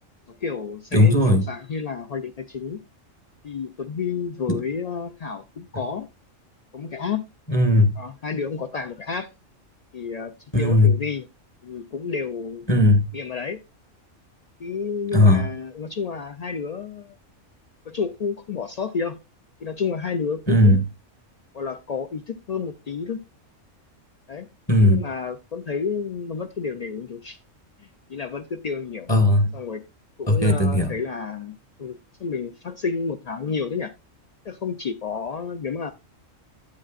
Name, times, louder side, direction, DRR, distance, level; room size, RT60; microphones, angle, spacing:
voice 1, 0.3-2.8 3.4-6.1 6.7-7.2 8.0-9.3 9.9-11.3 11.6-12.7 13.1-13.6 14.6-17.2 17.9-19.2 19.6-20.8 21.5-23.2 24.3-24.5 24.8-27.4 27.8-29.1 29.5-29.8 30.2-33.9 34.4-35.9, left 5 dB, 70° left, 0.3 m, -30 dB
voice 2, 0.9-1.4 4.5-4.6 7.5-7.9 10.5-10.9 12.7-13.1 15.1-15.5 20.5-20.8 24.7-25.0 29.1-29.5 30.3-30.9, left 1 dB, 20° left, 1.3 m, -17 dB
10.5 x 8.6 x 2.4 m
omnidirectional pair, 1.4 m